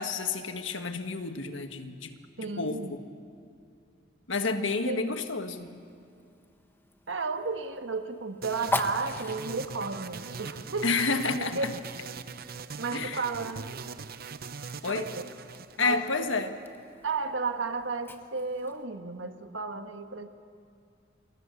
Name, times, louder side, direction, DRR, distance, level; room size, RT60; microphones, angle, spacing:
voice 1, 0.0-2.2 2.6-3.0 4.3-5.7 10.8-11.7 12.9-13.2 14.8-15.1 15.8-16.6, left 4 dB, 80° left, 7 dB, 1.6 m, -30 dB
voice 2, 2.4-3.0 4.7-5.2 7.1-11.0 11.4-11.7 12.8-13.8 14.9-15.3 15.8-16.0 17.0-20.3, right 4 dB, 75° right, 7 dB, 1.5 m, -33 dB
Fire, 5.6-18.9, left 2 dB, 10° left, 1.1 m, -42 dB
sound 1, 8.4-16.5, right 5 dB, 55° right, 0.7 m, -41 dB
28.5 x 24.0 x 6.9 m, 2.4 s
head